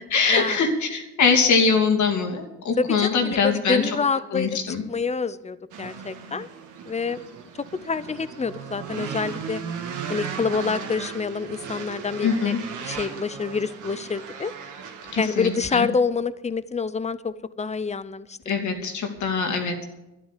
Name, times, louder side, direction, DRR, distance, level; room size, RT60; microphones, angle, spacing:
voice 1, 0.1-3.9 4.3-4.8 12.2-12.6 15.1-15.9 18.5-19.8, left 5 dB, 70° left, 4 dB, 2.7 m, -22 dB
voice 2, 2.8-4.6 4.9-6.5 6.9-7.2 7.5-9.6 10.1-12.5 12.8-14.5 15.2-18.4, left 5 dB, 20° left, 15 dB, 0.8 m, -27 dB
sound 1, 5.7-15.8, right 6 dB, 85° right, 2.0 m, -36 dB
12.0 x 10.5 x 8.5 m, 0.97 s
cardioid pair, 90°, 30 cm